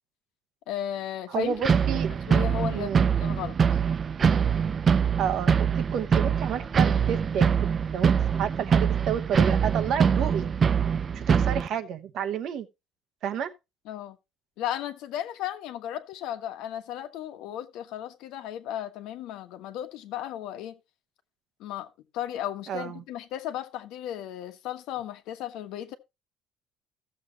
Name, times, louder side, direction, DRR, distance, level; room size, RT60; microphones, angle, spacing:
voice 1, 0.7-1.6 2.3-3.6 13.8-14.2 14.6-20.8 21.6-25.9, left 11 dB, 70° left, 1.4 m, -35 dB
voice 2, 1.3-2.1 2.7-3.0 5.2-8.1 8.4-10.5 11.1-12.7 13.2-13.5 22.7-23.0, right 8 dB, 45° right, 1.0 m, -30 dB
sound 1, 1.6-11.7, right 7 dB, 25° right, 0.4 m, -23 dB
15.0 x 7.4 x 2.9 m
cardioid pair, 180°, 0 cm